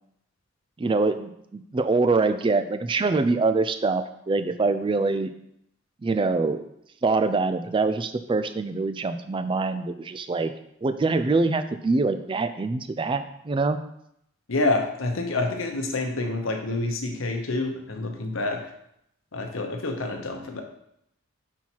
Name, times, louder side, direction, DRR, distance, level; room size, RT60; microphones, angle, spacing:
voice 1, 0.8-5.3 6.0-6.7 7.0-10.5 10.8-13.8, right 3 dB, 25° right, 10 dB, 0.3 m, -24 dB
voice 2, 14.5-18.6 19.3-20.6, left 2 dB, 75° left, 4 dB, 0.9 m, -27 dB
5.6 x 4.5 x 4.5 m, 0.75 s
head